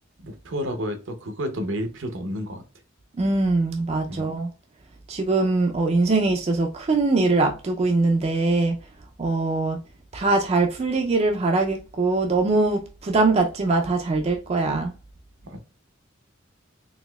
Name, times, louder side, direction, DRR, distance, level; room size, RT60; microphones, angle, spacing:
voice 1, 0.2-2.6 4.1-4.3 15.4-15.6, equal, 65° right, 0.7 m, -30 dB
voice 2, 3.2-4.5 5.1-8.8 9.2-9.8 10.1-14.9, right 3 dB, 30° right, 0.4 m, -22 dB
4.0 x 2.8 x 2.2 m
head